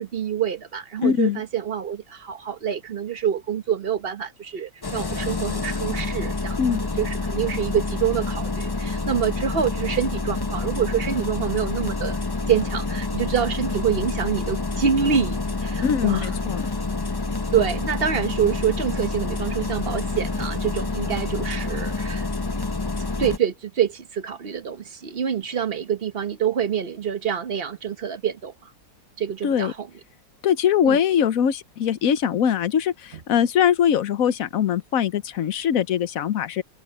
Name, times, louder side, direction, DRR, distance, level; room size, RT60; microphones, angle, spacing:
voice 1, 0.0-6.6 7.0-12.2 12.5-16.3 17.5-22.3 23.2-28.7 29.2-29.9 30.8-31.0, right 8 dB, 40° right, 1.0 m, -26 dB
voice 2, 1.0-1.4 6.6-6.8 15.8-16.7 29.4-29.7 30.4-36.6, left 8 dB, 55° left, 1.1 m, -22 dB
Engine starting, 4.8-23.4, left 3 dB, 30° left, 0.4 m, -28 dB
omnidirectional pair, 2.0 m